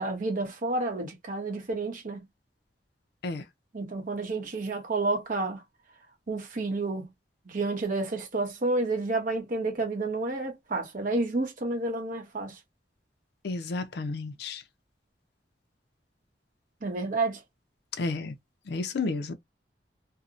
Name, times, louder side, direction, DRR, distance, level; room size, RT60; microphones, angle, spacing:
voice 1, 0.0-2.2 3.7-5.6 6.3-7.1 7.5-12.6 16.8-17.4, right 2 dB, 50° right, 0.8 m, -30 dB
voice 2, 13.4-14.6 18.0-18.3 18.7-19.3, left 3 dB, 65° left, 0.5 m, -31 dB
2.6 x 2.0 x 2.4 m
head